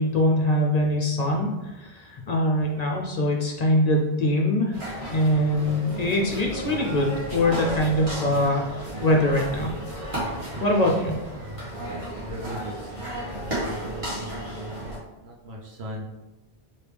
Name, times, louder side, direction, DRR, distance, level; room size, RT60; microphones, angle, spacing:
voice 1, 0.0-4.8 5.1-9.7 10.6-11.1, left 1 dB, 50° left, 0 dB, 0.6 m, -23 dB
sound 1, 4.7-15.0, right 1 dB, 30° right, 1.6 m, -33 dB
voice 2, 11.8-12.9 13.8-16.0, right 1 dB, 75° right, -1 dB, 1.1 m, -39 dB
4.8 x 2.9 x 3.4 m, 1.0 s
omnidirectional pair, 1.1 m